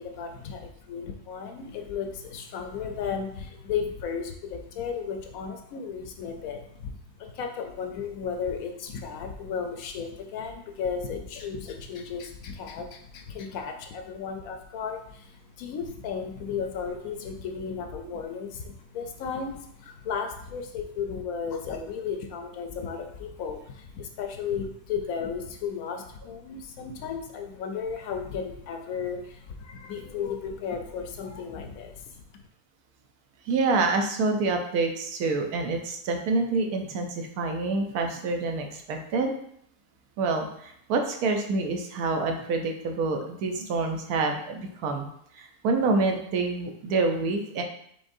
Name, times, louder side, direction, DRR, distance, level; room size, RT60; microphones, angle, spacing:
voice 1, 0.0-6.9 7.2-32.0, left 6 dB, 70° left, 5 dB, 1.0 m, -34 dB
voice 2, 33.4-39.3 40.2-45.1 45.3-47.6, right 3 dB, 80° right, 4 dB, 1.1 m, -27 dB
5.2 x 3.5 x 2.6 m, 0.69 s
omnidirectional pair, 1.6 m